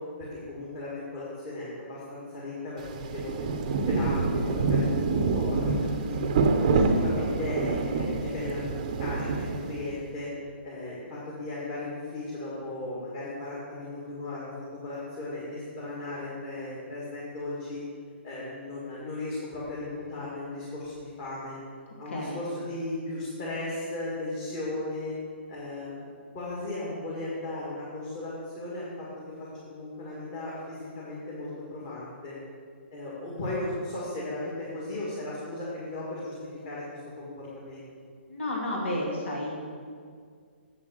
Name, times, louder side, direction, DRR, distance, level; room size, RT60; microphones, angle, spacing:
voice 1, 0.2-3.5 3.9-6.2 6.6-10.3 10.6-14.5 14.8-17.8 18.2-21.6 22.0-25.2 25.5-26.0 26.3-29.1 29.7-32.4 32.9-36.3 36.6-37.8, left 2 dB, 25° left, -8 dB, 2.2 m, -36 dB
Rain, 2.8-10.0, right 4 dB, 35° right, 0.7 m, -26 dB
voice 2, 22.1-22.4 38.3-39.6, left 1 dB, 80° left, -3 dB, 2.6 m, -31 dB
8.3 x 7.3 x 6.6 m, 2.1 s
hypercardioid pair, 165°, 7 cm